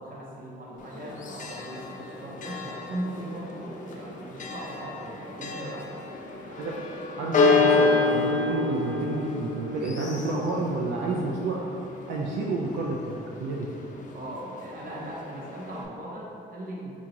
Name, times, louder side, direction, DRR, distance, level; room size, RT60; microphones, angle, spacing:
voice 1, 0.0-5.9 14.1-17.0, right 1 dB, 45° right, -4 dB, 0.8 m, -38 dB
Church bell, 0.8-15.9, left 3 dB, 40° left, 0.4 m, -29 dB
voice 2, 7.2-11.7 12.1-13.7, right 2 dB, 80° right, -3 dB, 0.4 m, -30 dB
3.8 x 2.4 x 2.9 m, 2.6 s
cardioid pair, 90°, 20 cm